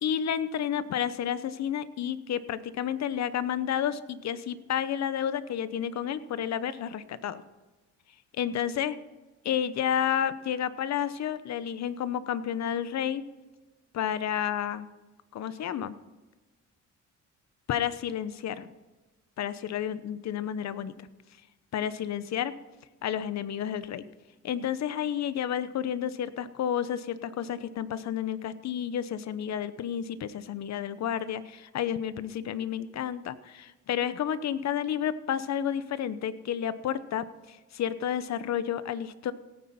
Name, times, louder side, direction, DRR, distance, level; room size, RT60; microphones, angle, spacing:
voice 1, 0.0-7.4 8.3-9.0 9.4-13.2 13.9-14.9 15.3-16.0 17.7-18.7 19.4-20.9 21.7-22.5 23.0-24.0 24.4-39.3, left 9 dB, 60° left, 15 dB, 0.9 m, -31 dB
17.0 x 9.5 x 4.3 m, 1.2 s
cardioid pair, 90°, 30 cm